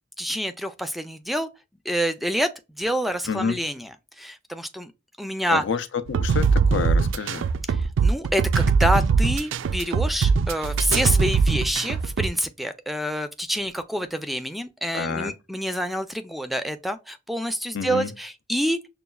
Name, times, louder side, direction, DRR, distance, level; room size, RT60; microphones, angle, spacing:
voice 1, 0.2-1.5 1.9-2.5 2.8-3.9 4.2-4.9 5.2-5.6 7.7-18.8, equal, ahead, 0.4 m, -27 dB
voice 2, 3.3-3.6 5.5-7.5 14.9-15.3 17.7-18.1, left 5 dB, 80° left, 0.5 m, -28 dB
sound 1, 6.1-12.3, right 5 dB, 90° right, 0.3 m, -21 dB
6.7 x 2.3 x 2.2 m
head